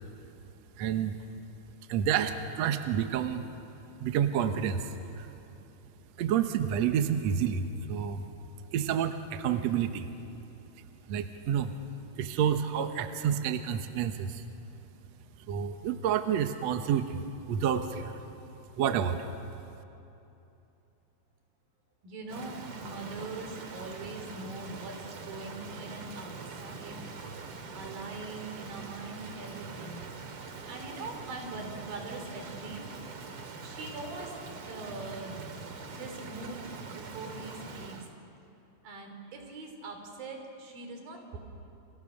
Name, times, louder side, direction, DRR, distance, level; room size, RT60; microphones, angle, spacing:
voice 1, 0.8-1.2 1.9-3.5 4.0-4.9 5.2-5.3 6.2-8.3 8.7-10.1 11.1-11.7 12.2-14.4 15.5-17.2 17.5-18.2 18.8-19.3, right 8 dB, 65° right, 7 dB, 1.9 m, -29 dB
voice 2, 22.0-27.1 27.4-27.5 27.7-30.0 30.6-32.8 33.6-34.4 34.6-35.4 35.9-38.0 38.8-41.4, right 3 dB, 80° right, 4 dB, 5.2 m, -42 dB
Rain, 22.3-38.1, right 4 dB, 45° right, 2.3 m, -43 dB
29.5 x 28.5 x 6.5 m, 2.9 s
omnidirectional pair, 4.0 m